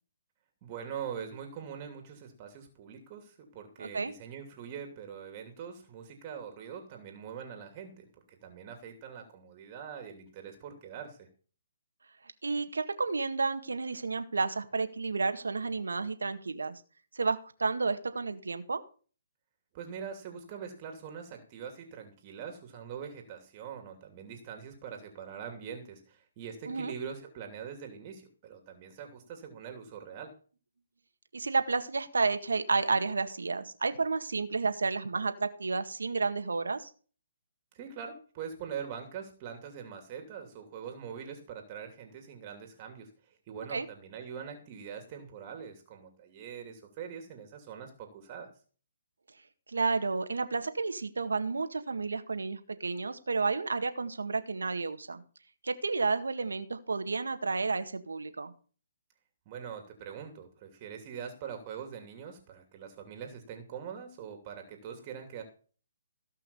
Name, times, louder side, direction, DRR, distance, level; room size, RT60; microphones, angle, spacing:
voice 1, 0.6-11.3 19.7-30.3 37.7-48.5 59.5-65.4, right 7 dB, 30° right, 4 dB, 2.7 m, -43 dB
voice 2, 3.8-4.1 12.4-16.8 17.1-18.8 26.7-26.9 31.3-36.9 43.7-43.9 49.7-55.2 55.6-58.5, right 4 dB, 85° right, 8 dB, 1.8 m, -31 dB
17.5 x 5.8 x 7.1 m, 0.41 s
hypercardioid pair, 150°, 0 cm